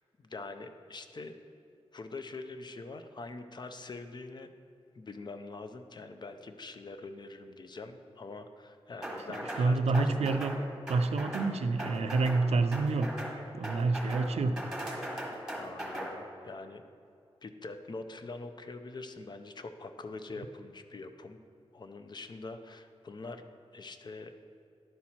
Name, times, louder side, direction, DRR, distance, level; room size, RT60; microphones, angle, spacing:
voice 1, 0.2-1.3 1.9-4.5 4.9-10.7 14.0-14.2 15.6-16.8 17.4-21.4 21.7-23.4 23.7-24.3, left 3 dB, 45° left, 8 dB, 0.5 m, -44 dB
sound 1, 9.0-9.7 9.9-10.6 10.9-11.5 11.8-12.4 12.7-13.4 13.6-14.3 14.6-16.1, right 1 dB, 5° right, 1.4 m, -38 dB
voice 2, 9.6-10.6 10.9-13.1 13.5-14.6, right 3 dB, 85° right, 9 dB, 0.4 m, -28 dB
10.5 x 4.4 x 4.2 m, 2.4 s
wide cardioid pair, 90°, 10 cm